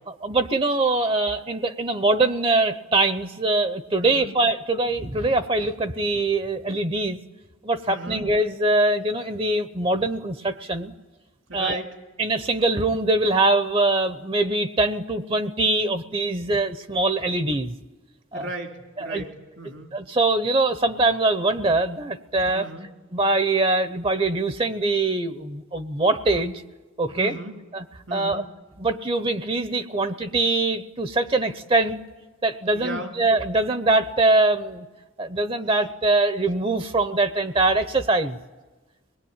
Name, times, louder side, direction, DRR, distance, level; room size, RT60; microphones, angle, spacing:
voice 1, 0.2-7.2 7.6-10.9 11.5-11.8 12.2-17.7 18.3-18.5 19.0-19.2 19.9-22.7 23.1-26.5 27.0-27.4 27.7-27.8 28.1-28.4 28.8-32.0 32.4-34.9 35.2-38.4, right 2 dB, 30° right, 11 dB, 0.8 m, -23 dB
voice 2, 4.0-4.3 7.9-8.3 11.5-11.9 18.3-20.0 22.5-22.9 27.2-27.6 28.1-28.4 32.7-33.2, right 1 dB, 80° right, 2 dB, 3.1 m, -35 dB
24.5 x 20.0 x 8.9 m, 1.2 s
head